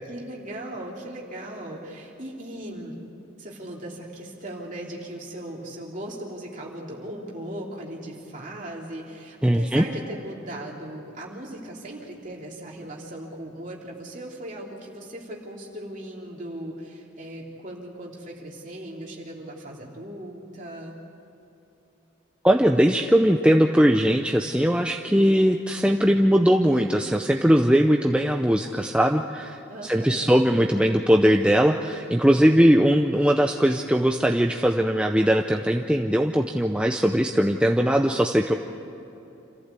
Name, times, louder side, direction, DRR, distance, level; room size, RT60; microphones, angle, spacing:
voice 1, 0.1-2.9 3.4-20.9 29.7-30.4, right 1 dB, 40° right, -2 dB, 3.2 m, -38 dB
voice 2, 9.4-9.8 22.4-38.5, equal, 5° right, 3 dB, 0.5 m, -20 dB
27.5 x 14.5 x 8.3 m, 2.9 s
head